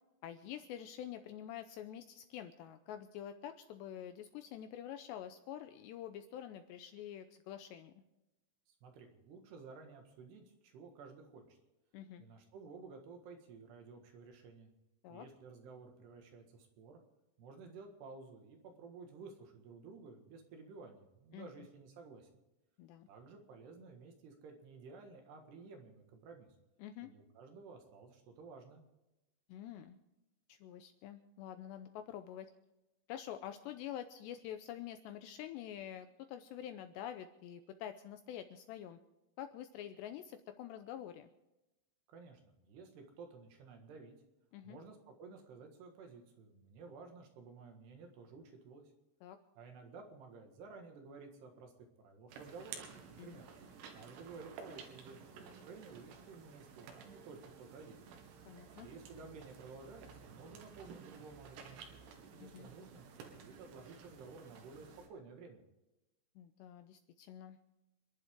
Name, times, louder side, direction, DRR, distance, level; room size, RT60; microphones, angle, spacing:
voice 1, 0.2-8.0 11.9-12.2 15.0-15.3 21.3-21.7 22.8-23.1 26.8-27.1 29.5-30.0 30.5-32.5 33.1-39.0 39.4-41.3 44.5-44.8 49.2-49.4 53.2-53.4 58.5-58.9 62.4-62.7 66.4-67.6, left 10 dB, 85° left, 8 dB, 2.5 m, -47 dB
voice 2, 8.7-11.6 12.2-14.7 15.1-17.0 17.4-22.3 23.1-26.5 27.0-28.9 42.1-44.2 44.6-48.9 49.6-51.7 52.0-53.5 53.9-58.0 58.8-65.6, right 4 dB, 65° right, 4 dB, 3.6 m, -54 dB
sound 1, 52.3-65.1, right 6 dB, 85° right, 4.3 m, -54 dB
28.5 x 11.0 x 3.7 m, 0.98 s
omnidirectional pair, 5.6 m